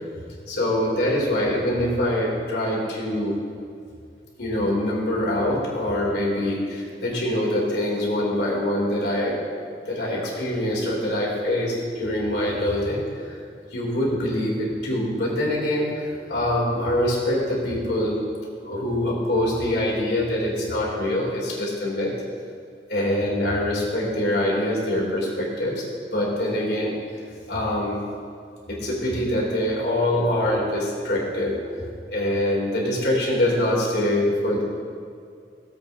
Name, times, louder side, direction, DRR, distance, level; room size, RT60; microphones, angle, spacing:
voice 1, 0.5-3.4 4.4-9.4 9.9-13.4 13.7-18.2 18.6-22.1 22.9-25.8 26.1-26.9 27.5-28.0 28.7-34.6, left 1 dB, 70° left, -4 dB, 2.7 m, -24 dB
18.0 x 7.9 x 2.6 m, 2.4 s
head